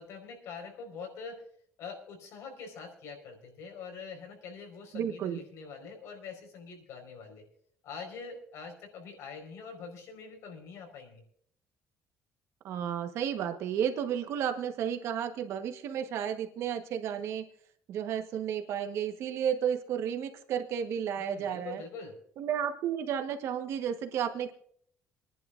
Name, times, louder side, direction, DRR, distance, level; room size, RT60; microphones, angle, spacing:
voice 1, 0.0-1.4 1.8-7.5 7.8-11.2 21.2-22.2, left 5 dB, 70° left, 3 dB, 4.8 m, -44 dB
voice 2, 4.9-5.4 12.6-17.4 17.9-21.8 22.4-24.5, right 8 dB, 65° right, 7 dB, 1.2 m, -32 dB
27.5 x 11.0 x 2.5 m, 0.62 s
cardioid pair, 135°, 5 cm